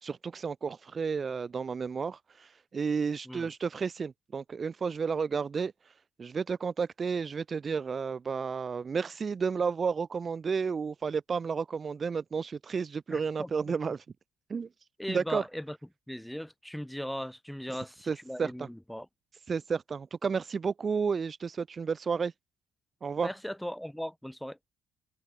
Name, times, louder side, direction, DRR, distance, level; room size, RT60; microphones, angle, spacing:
voice 1, 0.0-5.9 6.2-14.0 14.5-14.7 15.1-15.4 17.7-17.8 18.1-18.7 19.5-22.3 23.0-23.3, right 5 dB, 30° right, 1.4 m, -32 dB
voice 2, 13.1-13.7 15.0-15.8 16.1-19.1 23.2-24.7, equal, ahead, 4.7 m, -38 dB
cardioid pair, 125°, 0 cm